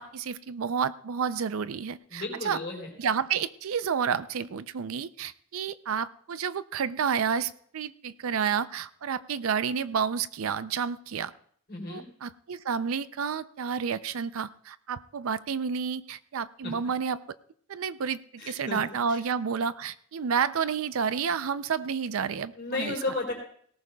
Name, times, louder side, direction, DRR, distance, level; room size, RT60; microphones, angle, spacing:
voice 1, 0.0-2.6 3.0-11.3 11.9-17.2 17.7-18.2 18.5-22.9, right 6 dB, 85° right, 15 dB, 0.5 m, -30 dB
voice 2, 2.1-2.9 11.7-12.0 16.6-16.7 18.4-19.2 22.6-23.3, left 2 dB, 50° left, -1 dB, 3.6 m, -34 dB
18.5 x 18.0 x 2.3 m, 0.62 s
head